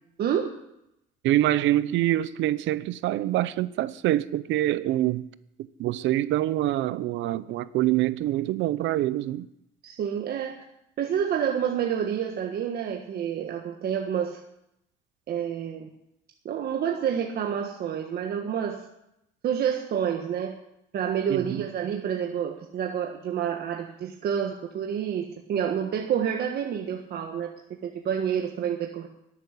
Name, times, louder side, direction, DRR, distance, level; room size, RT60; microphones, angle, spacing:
voice 1, 0.2-0.5 9.8-10.6 11.0-14.4 15.3-15.9 16.4-18.8 19.4-20.5 20.9-27.5 27.8-29.1, right 8 dB, 55° right, 1.5 m, -28 dB
voice 2, 1.2-5.3 5.8-9.5 21.3-21.6, right 14 dB, 75° right, 0.8 m, -25 dB
13.0 x 8.9 x 9.9 m
cardioid pair, 125°, 20 cm